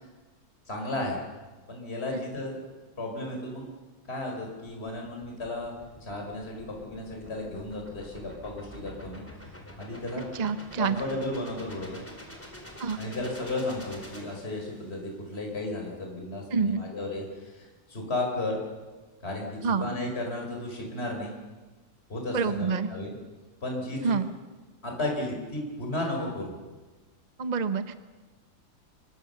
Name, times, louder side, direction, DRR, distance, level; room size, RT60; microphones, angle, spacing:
voice 1, 0.7-1.2 1.7-2.7 3.0-3.7 4.0-5.7 6.0-9.2 9.8-10.2 10.8-12.0 12.9-18.6 19.2-21.3 22.1-23.1 23.6-24.2 24.8-26.5, left 2 dB, 30° left, 1 dB, 4.7 m, -34 dB
sound 1, 4.9-15.0, equal, 5° left, 4.2 m, -47 dB
voice 2, 10.3-11.0 12.8-13.0 16.5-16.8 19.6-19.8 22.3-22.9 24.0-24.2 27.4-27.9, right 5 dB, 35° right, 11 dB, 0.7 m, -27 dB
26.0 x 22.5 x 6.8 m, 1.2 s
omnidirectional pair, 2.1 m